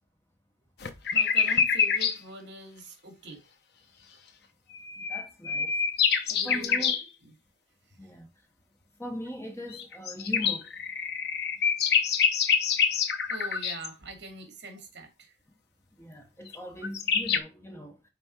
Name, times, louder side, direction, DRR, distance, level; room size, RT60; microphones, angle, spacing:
sound 1, 0.8-2.2 4.7-7.0 9.7-13.9 16.5-16.6 16.8-17.4, left 6 dB, 55° left, 0.9 m, -26 dB
voice 1, 1.1-3.4 6.3-6.9 7.2-7.3 7.9-8.1 13.3-15.4, right 2 dB, 65° right, 2.5 m, -44 dB
voice 2, 5.0-5.8 6.4-6.9 8.0-8.3 9.0-10.7 16.0-18.1, equal, 15° left, 1.1 m, -40 dB
5.8 x 4.4 x 4.6 m
head